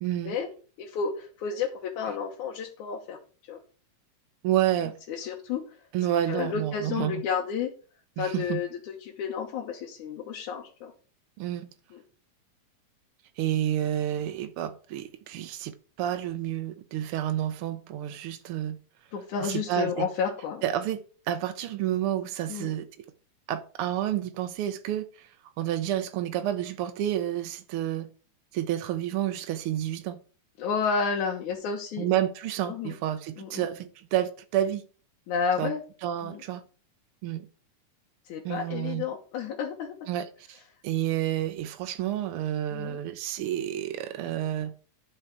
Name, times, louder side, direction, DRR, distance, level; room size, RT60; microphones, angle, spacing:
voice 1, 0.0-0.4 4.4-5.0 5.9-7.2 8.2-8.6 11.4-11.7 13.4-18.8 19.4-20.1 20.6-22.9 23.5-28.1 28.5-30.2 32.0-34.8 35.6-35.7 36.0-36.6 37.2-37.4 38.4-39.1 40.1-44.7, right 11 dB, 80° right, 1.2 m, -30 dB
voice 2, 0.8-3.2 3.5-3.6 5.1-5.8 6.3-7.7 8.2-10.9 11.9-12.0 19.1-20.6 22.5-22.7 30.6-32.1 32.7-32.9 33.4-33.7 35.3-35.8 36.2-36.4 38.3-40.1 42.7-43.0, left 6 dB, 85° left, 2.6 m, -31 dB
11.0 x 5.5 x 4.7 m
omnidirectional pair, 3.3 m